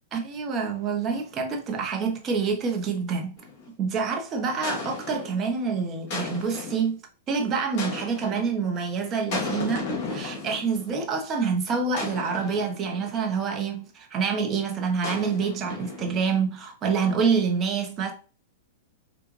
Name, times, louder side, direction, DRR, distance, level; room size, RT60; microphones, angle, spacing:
voice 1, 0.1-3.3 3.8-7.0 7.3-18.1, right 5 dB, 30° right, 1.0 m, -27 dB
sound 1, 3.4-3.7 4.6-5.4 6.1-6.9 7.8-8.5 9.3-11.0 11.9-13.2 15.0-16.3, left 3 dB, 45° left, 1.9 m, -34 dB
4.9 x 2.5 x 3.1 m
hypercardioid pair, 125°, 0 cm